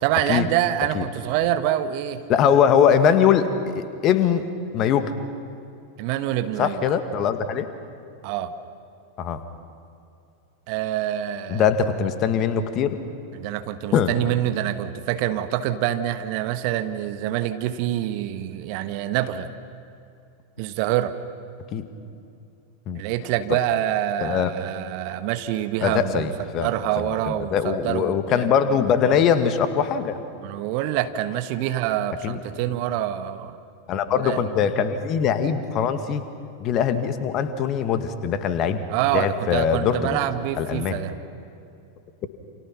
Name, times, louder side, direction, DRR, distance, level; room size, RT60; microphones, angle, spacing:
voice 1, 0.0-2.2 6.0-6.8 8.2-8.5 10.7-11.7 13.3-19.5 20.6-21.1 22.9-26.3 26.6-28.5 30.4-33.6 34.1-34.5 38.9-41.2, right 12 dB, 45° right, 9 dB, 1.3 m, -26 dB
voice 2, 2.3-4.5 4.7-5.1 6.6-7.7 9.2-9.4 11.5-13.0 13.9-14.1 21.7-21.8 22.9-23.0 24.2-24.5 25.8-26.7 27.0-30.2 32.2-32.4 33.9-36.2 36.6-38.8 39.1-40.2 40.6-41.0, left 7 dB, 35° left, 10 dB, 1.8 m, -22 dB
29.5 x 28.0 x 5.9 m, 2.6 s
figure-of-eight pair, 90°, 0 cm